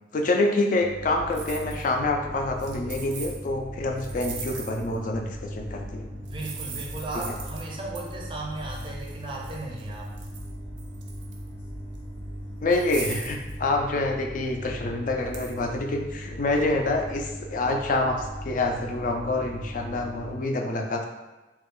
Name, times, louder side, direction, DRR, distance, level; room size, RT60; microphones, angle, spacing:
voice 1, 0.1-6.1 12.6-21.1, left 2 dB, 45° left, 3 dB, 0.4 m, -27 dB
sound 1, 0.8-20.5, equal, 5° left, 0.7 m, -40 dB
sound 2, 1.0-20.2, equal, 70° left, 0.7 m, -43 dB
sound 3, 1.3-1.9 2.6-3.4 4.0-5.0 6.3-7.7 8.0-8.1 8.6-10.5 10.8-11.5 12.0-12.1 12.7-13.6 15.3-15.5, right 6 dB, 85° right, 0.5 m, -40 dB
voice 2, 6.1-10.1, right 2 dB, 25° right, -2 dB, 0.5 m, -36 dB
3.0 x 2.3 x 3.6 m, 1.1 s
head